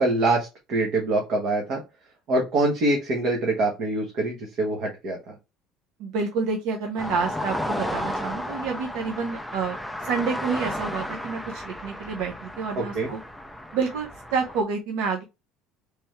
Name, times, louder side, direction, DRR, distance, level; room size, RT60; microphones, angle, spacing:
voice 1, 0.0-1.8 2.3-5.3 12.8-13.1, right 2 dB, 50° right, 0 dB, 1.0 m, -24 dB
voice 2, 6.0-13.2 13.7-15.2, right 5 dB, 75° right, 2 dB, 0.8 m, -29 dB
sound 1, 7.0-14.6, left 1 dB, ahead, 0.3 m, -33 dB
3.4 x 3.2 x 3.1 m, 0.25 s
cardioid pair, 160°, 0 cm